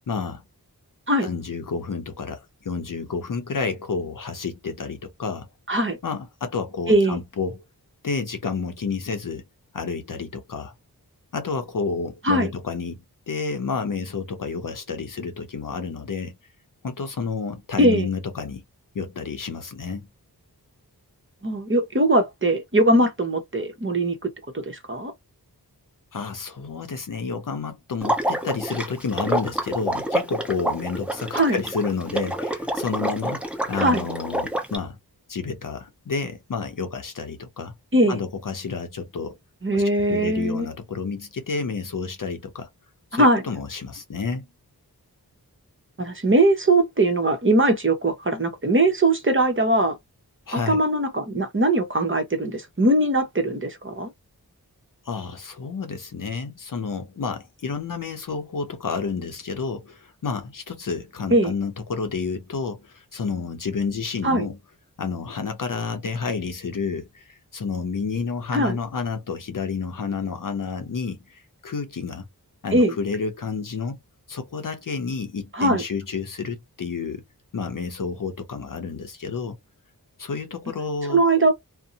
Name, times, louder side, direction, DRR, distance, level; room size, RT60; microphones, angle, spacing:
voice 1, 0.1-0.4 1.2-5.5 6.0-7.6 8.0-9.4 9.7-10.7 11.3-16.4 16.8-18.6 18.9-20.1 26.1-33.4 33.7-35.0 35.3-37.7 38.1-39.4 39.7-42.7 43.1-44.4 50.5-50.8 55.0-64.6 65.0-72.2 72.6-74.0 74.3-77.2 77.5-79.6 80.2-81.2, left 5 dB, 55° left, 0.6 m, -30 dB
voice 2, 6.9-7.2 12.2-12.5 17.8-18.1 21.4-24.3 24.5-25.1 31.3-31.6 33.8-34.0 37.9-38.2 39.6-40.7 43.1-43.4 46.0-50.0 50.5-54.1 61.3-61.5 64.2-64.5 68.5-68.8 72.7-73.0 75.5-75.8 81.1-81.5, right 1 dB, 30° right, 0.9 m, -20 dB
Water / Liquid, 28.0-34.8, right 1 dB, 5° right, 0.8 m, -27 dB
2.6 x 2.1 x 2.6 m
wide cardioid pair, 50°, 38 cm